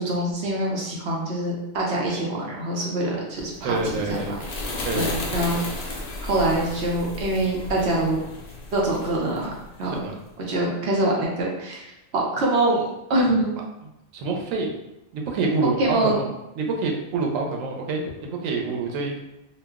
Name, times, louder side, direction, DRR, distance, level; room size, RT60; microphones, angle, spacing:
voice 1, 0.0-3.8 4.9-5.9 6.2-8.2 8.7-9.5 9.8-9.9 10.5-11.9 12.1-12.8 13.1-13.5 15.8-16.2, right 1 dB, 60° right, -3 dB, 0.8 m, -24 dB
sound 1, 3.5-10.1, left 2 dB, 85° left, 0.3 m, -34 dB
voice 2, 3.6-4.4 4.8-5.0 9.8-10.2 14.1-14.8 15.1-16.3 16.6-19.2, right 3 dB, 90° right, 1 dB, 1.0 m, -27 dB
2.4 x 2.0 x 3.4 m, 0.93 s
omnidirectional pair, 1.3 m